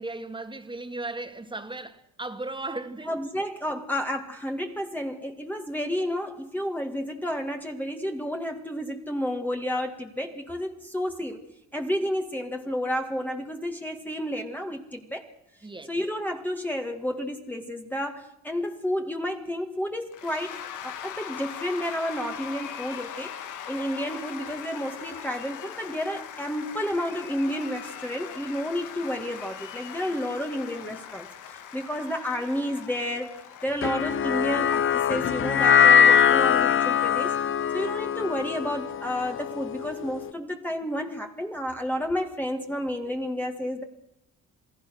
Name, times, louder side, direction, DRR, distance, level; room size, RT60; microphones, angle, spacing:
voice 1, 0.0-3.2 15.6-16.0, right 2 dB, 15° right, 2.2 m, -36 dB
voice 2, 3.1-11.4 11.7-15.2 15.9-23.3 23.7-33.3 33.6-37.4 37.7-43.8, equal, 5° left, 2.0 m, -31 dB
Cheering / Applause / Crowd, 20.1-35.8, left 9 dB, 90° left, 2.2 m, -41 dB
sound 1, 33.8-40.2, left 7 dB, 40° left, 0.8 m, -22 dB
28.0 x 17.5 x 6.4 m
cardioid pair, 90°, 30 cm